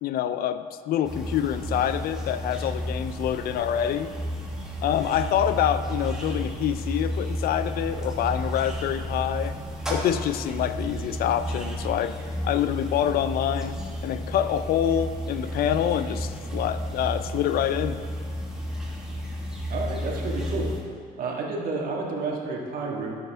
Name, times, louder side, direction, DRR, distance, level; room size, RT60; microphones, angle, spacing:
voice 1, 0.0-4.1 4.8-9.5 9.9-12.2 12.4-13.8 14.0-18.0, left 10 dB, 65° left, 12 dB, 0.4 m, -26 dB
sound 1, 1.0-20.8, equal, 5° right, 1.6 m, -32 dB
voice 2, 19.7-20.7 21.2-23.1, right 3 dB, 55° right, -1 dB, 1.6 m, -30 dB
11.0 x 7.0 x 3.4 m, 2.2 s
cardioid pair, 110°, 17 cm